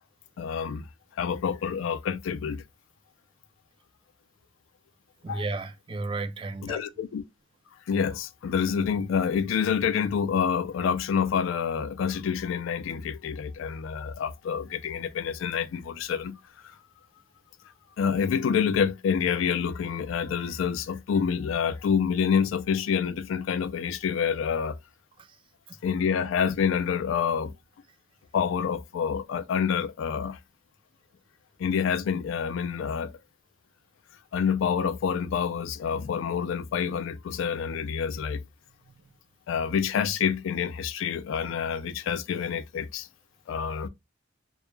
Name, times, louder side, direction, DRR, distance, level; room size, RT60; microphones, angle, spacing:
voice 1, 0.4-0.9 1.2-2.6 5.3-5.4 6.6-7.2 7.9-16.7 18.0-24.8 25.8-27.5 28.3-30.4 31.6-33.1 34.3-38.4 39.5-43.1 43.5-43.9, left 7 dB, 90° left, 0.3 m, -27 dB
voice 2, 5.2-6.8 25.2-25.4 25.7-25.8 38.9-39.0, right 3 dB, 25° right, 0.3 m, -34 dB
2.2 x 2.0 x 3.0 m
head